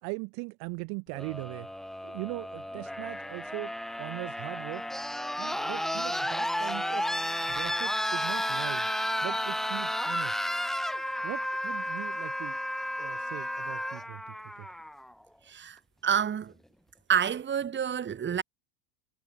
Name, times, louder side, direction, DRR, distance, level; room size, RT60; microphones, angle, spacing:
voice 1, 0.0-1.7 2.0-4.8 5.4-7.2 7.5-8.9 9.2-10.4 11.2-12.6 13.0-14.7, right 33 dB, 65° right, 3.5 m, -40 dB
sound 1, 1.1-15.1 16.3-16.4, left 1 dB, ahead, 0.4 m, -32 dB
voice 2, 15.5-16.5 17.1-18.4, right 8 dB, 25° right, 2.7 m, -28 dB
supercardioid pair, 115°, 41 cm